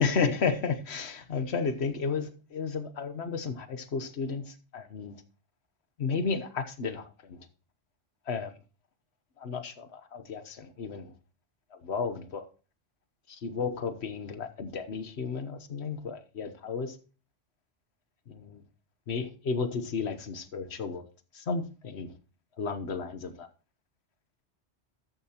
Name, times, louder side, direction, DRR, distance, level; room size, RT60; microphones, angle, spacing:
voice 1, 0.0-5.2 6.0-7.4 8.3-8.5 9.4-11.1 11.7-12.5 13.3-17.0 18.3-18.6 19.1-21.0 21.3-22.1 22.6-23.5, left 5 dB, 65° left, 1.3 m, -33 dB
13.0 x 8.9 x 2.9 m
omnidirectional pair, 1.2 m